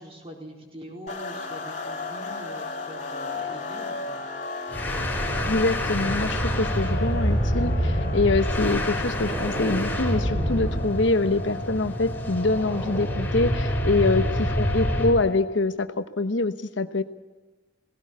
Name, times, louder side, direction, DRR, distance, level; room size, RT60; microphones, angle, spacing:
voice 1, 0.0-4.2, equal, 30° right, 1 dB, 4.5 m, -43 dB
sound 1, 1.1-15.6, left 3 dB, 40° left, 3.3 m, -35 dB
sound 2, 4.7-15.2, equal, 10° left, 4.3 m, -27 dB
voice 2, 5.5-17.0, left 3 dB, 70° left, 11 dB, 1.0 m, -25 dB
18.0 x 17.5 x 8.4 m, 1.2 s
head